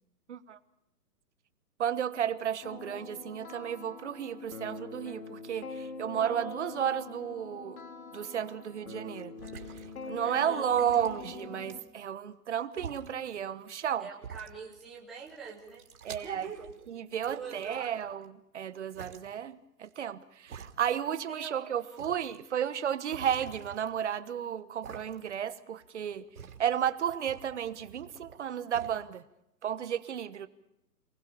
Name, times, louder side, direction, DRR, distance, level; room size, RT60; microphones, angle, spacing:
voice 1, 1.8-7.8 8.1-9.3 10.1-14.1 16.0-16.5 16.9-26.2 26.6-29.2 29.6-30.5, right 9 dB, 45° right, 1.3 m, -33 dB
sound 1, 2.6-11.8, left 4 dB, 60° left, 4.5 m, -44 dB
sound 2, 9.2-10.3 10.7-12.1 12.7-13.1 13.8-13.9 14.2-15.0 15.3-16.9 17.2-18.3 18.9-19.2 19.8-19.9 20.5-21.2 21.5-21.6 22.0-22.4 23.1-24.3 24.8-25.5 25.8-28.4 28.7-29.0, right 7 dB, 65° right, 3.3 m, -48 dB
voice 2, 10.2-10.7 14.0-15.8 16.2-16.7 17.3-18.0 21.3-22.0, right 5 dB, ahead, 0.8 m, -44 dB
28.5 x 19.5 x 6.9 m
hypercardioid pair, 170°, 48 cm